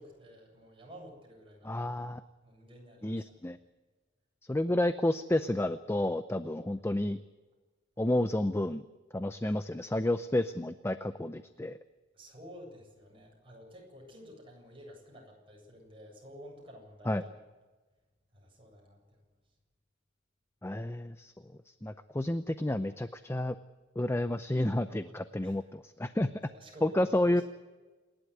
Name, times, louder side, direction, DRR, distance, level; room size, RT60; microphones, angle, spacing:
voice 1, 0.0-2.0 2.4-3.2 12.1-17.3 18.3-19.2 25.4-25.6 26.5-27.4, equal, 25° right, 0 dB, 7.7 m, -51 dB
voice 2, 1.6-2.2 3.0-3.6 4.5-7.2 8.0-8.8 9.1-11.8 17.1-17.2 20.6-21.3 21.8-23.6 24.0-26.3 26.8-27.4, left 1 dB, 15° left, 11 dB, 0.6 m, -30 dB
27.5 x 11.5 x 9.7 m, 1.2 s
head